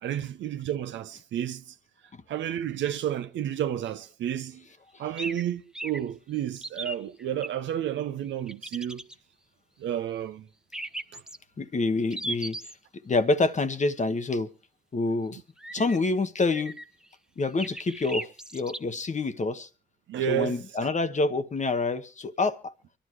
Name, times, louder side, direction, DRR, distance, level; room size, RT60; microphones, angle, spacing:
voice 1, 0.0-1.7 2.3-4.6 5.0-9.1 9.8-10.5 11.1-11.2 20.1-20.6, right 10 dB, 75° right, 0.8 m, -31 dB
sound 1, 5.2-5.4 5.7-6.0 6.6-7.5 8.5-9.1 10.7-11.4 12.1-12.7 15.6-16.0 16.5-17.1 17.6-18.8, right 1 dB, 5° right, 0.8 m, -36 dB
voice 2, 11.6-12.7 13.0-14.5 14.9-15.4 15.7-16.8 17.4-19.7 20.3-22.7, left 3 dB, 40° left, 1.2 m, -27 dB
25.0 x 11.5 x 3.2 m
supercardioid pair, 50°, 19 cm